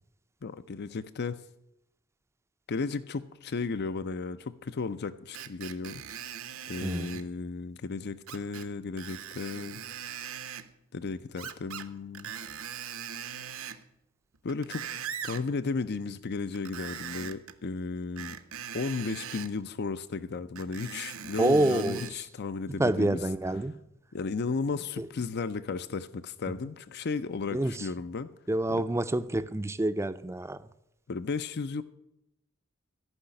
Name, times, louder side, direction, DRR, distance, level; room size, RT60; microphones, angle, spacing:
voice 1, 0.4-1.4 2.7-6.0 6.7-9.8 10.9-12.3 14.4-14.8 15.2-18.4 18.7-23.3 24.1-28.3 28.7-28.8 31.1-31.8, left 4 dB, 50° left, 13 dB, 0.5 m, -34 dB
Screech, 5.3-7.3 8.3-8.7 9.0-10.7 11.4-11.9 12.1-13.8 14.3-15.4 16.5-17.5 18.2-19.5 20.6-22.2 22.7-22.8, right 8 dB, 75° right, 0.9 m, -40 dB
voice 2, 6.8-7.1 21.4-22.0 22.8-23.8 25.0-25.1 27.5-27.8 28.5-30.6, right 1 dB, 15° right, 13 dB, 0.5 m, -27 dB
14.0 x 5.7 x 9.8 m, 0.84 s
head